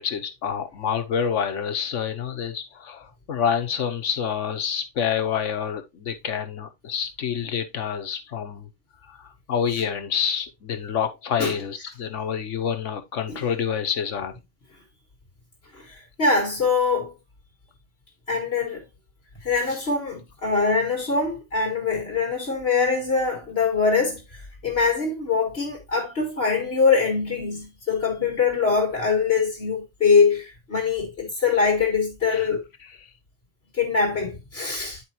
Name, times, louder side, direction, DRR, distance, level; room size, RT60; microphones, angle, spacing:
voice 1, 0.0-8.7 9.1-14.3 32.3-32.5, left 7 dB, 80° left, 1.3 m, -27 dB
voice 2, 15.7-17.1 18.3-18.8 19.4-32.6 33.7-35.0, left 5 dB, 55° left, 2.0 m, -23 dB
10.0 x 4.6 x 2.9 m
omnidirectional pair, 1.2 m